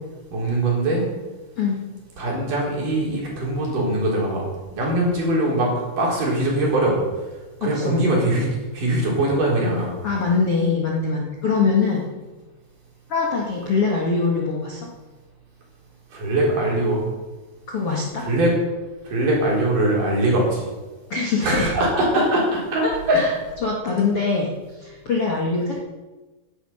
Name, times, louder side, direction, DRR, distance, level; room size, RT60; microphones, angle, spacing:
voice 1, 0.3-1.1 2.2-4.4 4.8-7.0 7.6-8.5 8.7-10.0 16.1-17.0 18.2-18.5 19.1-20.7 21.4-23.2, right 1 dB, 50° right, -3 dB, 5.5 m, -21 dB
voice 2, 7.6-8.0 10.0-12.0 13.1-14.9 17.7-18.2 21.1-21.7 23.1-23.3 23.6-24.5 24.8-25.8, left 4 dB, 45° left, -2 dB, 1.9 m, -23 dB
16.5 x 11.5 x 5.7 m, 1.2 s
omnidirectional pair, 5.1 m